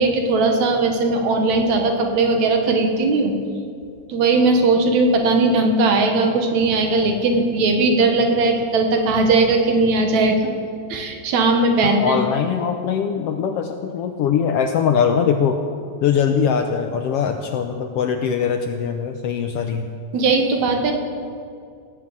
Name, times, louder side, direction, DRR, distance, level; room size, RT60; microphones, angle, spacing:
voice 1, 0.0-3.3 4.1-10.5 10.9-12.2 20.1-20.9, right 3 dB, 75° right, 4 dB, 2.8 m, -18 dB
voice 2, 11.8-15.6 16.0-19.9, left 7 dB, 75° left, 6 dB, 1.5 m, -21 dB
17.5 x 7.9 x 8.2 m, 2.3 s
omnidirectional pair, 3.3 m